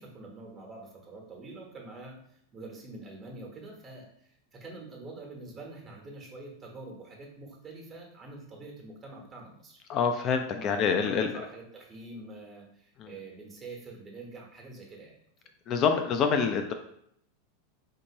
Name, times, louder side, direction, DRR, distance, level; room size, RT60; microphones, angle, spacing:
voice 1, 0.0-9.8 10.5-15.1, right 2 dB, 30° right, 0 dB, 1.2 m, -45 dB
voice 2, 9.9-11.3 13.0-13.1 15.7-16.7, left 6 dB, 40° left, 6 dB, 0.4 m, -26 dB
4.3 x 2.8 x 2.9 m, 0.70 s
hypercardioid pair, 90°, 0 cm